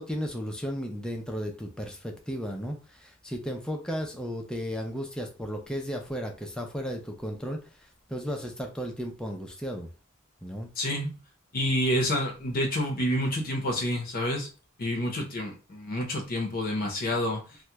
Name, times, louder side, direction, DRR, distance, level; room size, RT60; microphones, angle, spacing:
voice 1, 0.0-7.6 8.1-9.9 10.4-10.7, equal, 5° left, 2 dB, 0.4 m, -34 dB
voice 2, 10.8-11.2 11.5-14.5 14.8-17.4, left 1 dB, 45° left, 2 dB, 0.6 m, -28 dB
2.9 x 2.1 x 3.3 m, 0.34 s
head